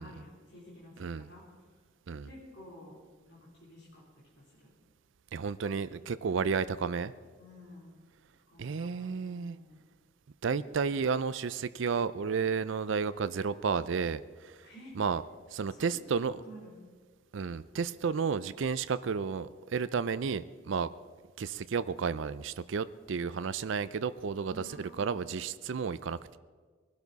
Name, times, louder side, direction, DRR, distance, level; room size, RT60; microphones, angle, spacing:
voice 1, 0.0-1.4 2.2-3.0 3.2-4.0 4.4-4.7 7.4-8.0 8.5-9.8 14.6-14.9 15.7-16.7 24.5-25.2, equal, 60° left, -6 dB, 3.3 m, -52 dB
voice 2, 5.3-7.1 8.6-9.6 10.4-14.7 15.0-15.2 15.5-16.4 17.3-20.9 21.4-26.4, right 5 dB, 70° right, 14 dB, 0.4 m, -32 dB
20.5 x 12.0 x 4.0 m, 1.5 s
head